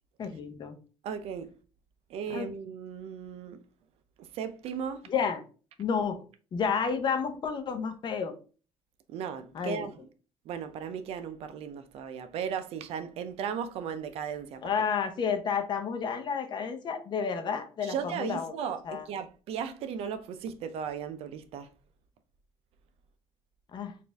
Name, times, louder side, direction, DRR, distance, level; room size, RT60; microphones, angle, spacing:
voice 1, 0.2-0.8 2.3-2.5 5.1-5.4 5.8-6.2 6.5-8.3 9.5-9.9 14.6-18.5 18.8-19.1 23.7-23.9, left 6 dB, 45° left, 0.7 m, -31 dB
voice 2, 1.0-1.5 2.1-3.6 4.2-5.1 9.1-10.1 10.5-14.7 17.8-21.7, right 7 dB, 70° right, 0.5 m, -36 dB
4.2 x 2.6 x 3.4 m
cardioid pair, 110°, 11 cm